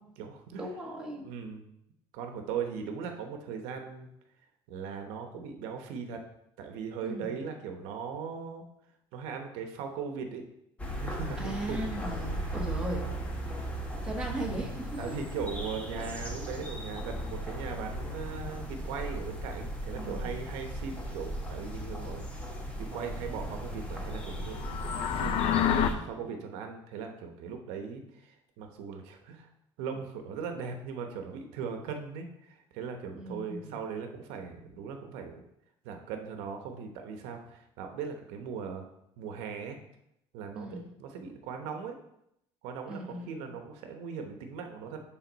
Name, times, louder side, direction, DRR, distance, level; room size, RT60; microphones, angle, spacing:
voice 1, 0.0-0.7 1.2-1.6 2.1-4.1 4.7-6.3 6.6-8.6 9.1-10.4 11.0-11.9 12.2-12.6 15.0-22.3 22.8-24.7 25.1-29.5 29.8-35.4 35.8-38.8 39.2-39.8 40.3-42.0 42.6-45.0, right 6 dB, 90° right, 5 dB, 1.0 m, -39 dB
voice 2, 0.6-1.2 7.0-7.3 11.4-13.0 14.0-15.2 20.0-20.4 25.5-26.3 33.1-33.8 40.5-40.9 42.9-43.5, right 1 dB, 10° right, -2 dB, 1.5 m, -38 dB
sound 1, 10.8-25.9, right 1 dB, 10° left, 1.1 m, -37 dB
sound 2, 24.5-25.9, left 10 dB, 60° left, 0.5 m, -27 dB
10.5 x 3.9 x 4.0 m, 0.79 s
cardioid pair, 150°, 10 cm